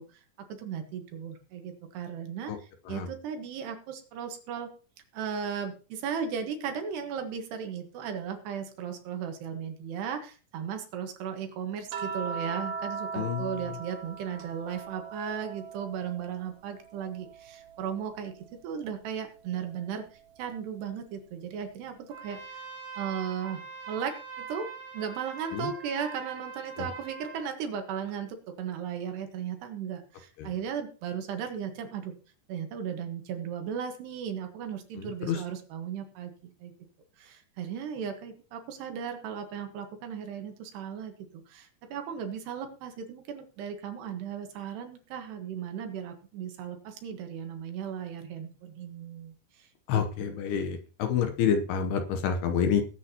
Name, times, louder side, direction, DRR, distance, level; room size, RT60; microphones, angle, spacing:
voice 1, 0.0-4.7 5.1-22.7 23.0-32.1 32.5-36.7 37.2-50.3, right 7 dB, 70° right, 6 dB, 3.3 m, -36 dB
sound 1, 11.9-16.4 16.8-18.4 19.9-20.1, right 5 dB, 90° right, 1.8 m, -39 dB
voice 2, 13.1-13.5 25.5-25.7 26.8-26.9 30.4-30.5 35.0-35.4 49.9-52.8, left 7 dB, 75° left, 6 dB, 2.7 m, -28 dB
Trumpet, 22.1-27.5, right 6 dB, 55° right, 3.6 m, -43 dB
19.5 x 8.7 x 2.9 m, 0.38 s
omnidirectional pair, 5.3 m